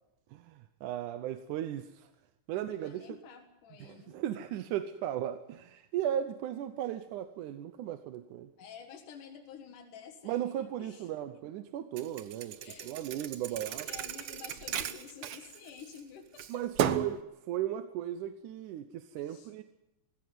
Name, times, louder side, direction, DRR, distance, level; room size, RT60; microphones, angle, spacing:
voice 1, 0.3-2.1 2.5-3.2 3.8-8.5 10.3-12.6 12.8-13.9 16.5-19.6, right 11 dB, 80° right, 9 dB, 2.3 m, -36 dB
voice 2, 2.5-4.2 8.6-11.4 12.6-13.2 13.5-16.7 19.2-19.5, left 7 dB, 85° left, 5 dB, 3.1 m, -51 dB
Thump thud, 12.0-16.0 16.4-17.2, right 9 dB, 65° right, 1.4 m, -35 dB
18.5 x 16.5 x 9.4 m, 0.94 s
omnidirectional pair, 3.5 m